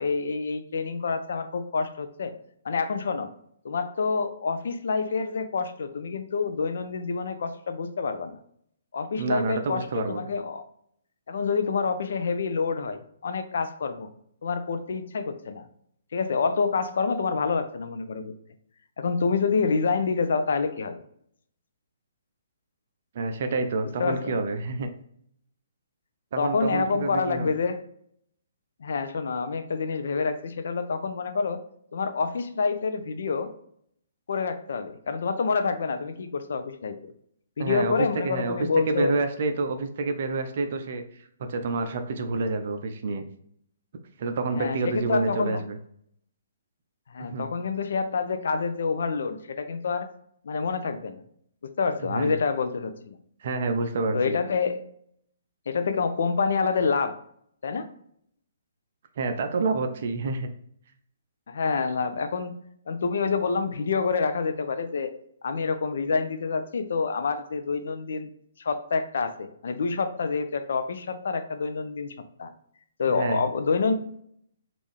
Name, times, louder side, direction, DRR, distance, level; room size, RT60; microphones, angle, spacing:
voice 1, 0.0-2.3 2.6-3.3 3.6-8.4 8.9-10.6 11.3-14.1 14.4-15.7 16.1-18.3 19.0-21.0 24.0-24.3 26.4-27.8 28.8-31.6 31.9-33.5 34.3-37.1 37.6-39.2 44.6-45.6 47.1-50.1 50.4-51.2 51.6-53.2 54.1-54.8 55.7-57.2 57.6-57.9 61.5-65.1 65.4-68.3 68.6-72.5 73.0-73.9, left 5 dB, 60° left, 8 dB, 0.4 m, -27 dB
voice 2, 9.1-10.2 23.1-24.9 26.3-27.5 37.6-37.9 38.2-41.0 41.5-43.3 44.2-45.8 47.2-47.5 52.0-52.4 53.4-54.4 59.2-60.5 73.1-73.4, right 3 dB, 50° right, 7 dB, 0.4 m, -28 dB
3.5 x 2.5 x 3.2 m, 0.68 s
figure-of-eight pair, 130°, 0 cm